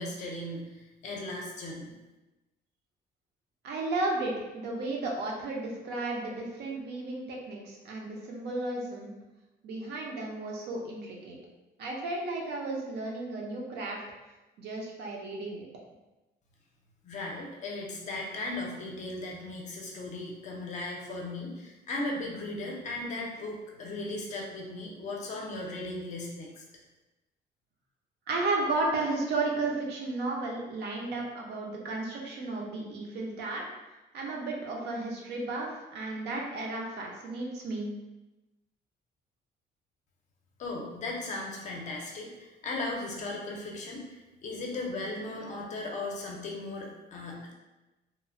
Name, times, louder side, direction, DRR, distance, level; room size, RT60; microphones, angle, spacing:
voice 1, 0.0-1.9 17.0-26.6 40.6-47.5, left 2 dB, 40° left, -1 dB, 0.5 m, -37 dB
voice 2, 3.6-9.1 9.6-11.4 11.8-14.0 14.6-15.7 28.3-33.7 34.1-37.9, right 2 dB, 65° right, -1 dB, 0.6 m, -33 dB
3.0 x 2.0 x 2.5 m, 1.1 s
cardioid pair, 175°, 18 cm